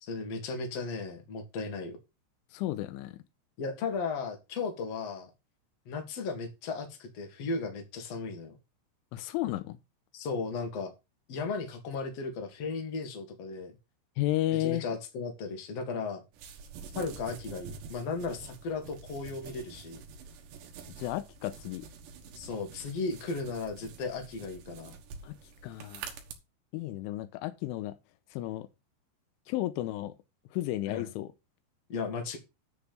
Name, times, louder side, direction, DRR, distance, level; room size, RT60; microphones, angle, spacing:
voice 1, 0.0-2.0 3.6-5.3 5.9-8.6 10.1-10.9 11.3-13.7 14.6-16.2 16.9-20.0 22.3-25.0 30.9-31.1 31.9-32.4, left 4 dB, 50° left, 2.0 m, -35 dB
voice 2, 2.5-3.2 9.1-9.8 14.2-14.8 21.0-21.9 25.2-25.4 25.6-26.1 26.7-28.0 28.3-28.7 29.5-30.1 30.5-31.3, left 15 dB, 85° left, 3.2 m, -33 dB
sound 1, 16.3-26.3, right 6 dB, 70° right, 3.2 m, -47 dB
10.0 x 4.1 x 6.8 m
omnidirectional pair, 5.7 m